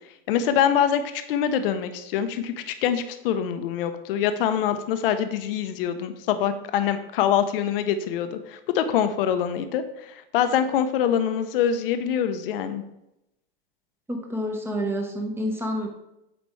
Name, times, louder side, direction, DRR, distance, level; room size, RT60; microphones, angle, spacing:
voice 1, 0.3-12.8, left 9 dB, 70° left, 9 dB, 0.8 m, -24 dB
voice 2, 14.1-15.9, equal, 10° right, 2 dB, 1.0 m, -28 dB
7.9 x 5.0 x 3.2 m, 0.85 s
supercardioid pair, 135°, 29 cm